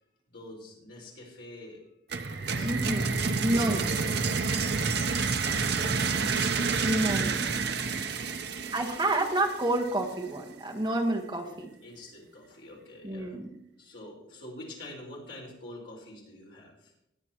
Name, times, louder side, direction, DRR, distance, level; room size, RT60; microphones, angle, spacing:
voice 1, 0.3-1.8 2.4-2.9 3.5-4.3 4.6-6.6 8.2-8.6 11.5-13.4 13.8-16.9, left 1 dB, 60° left, -3 dB, 4.8 m, -47 dB
sound 1, 2.1-9.9, right 4 dB, 55° right, 0.7 m, -29 dB
voice 2, 2.6-3.1 3.4-4.0 6.8-7.6 8.7-11.7 13.0-13.5, right 1 dB, 25° right, 0 dB, 1.3 m, -29 dB
20.0 x 8.1 x 3.0 m, 0.80 s
head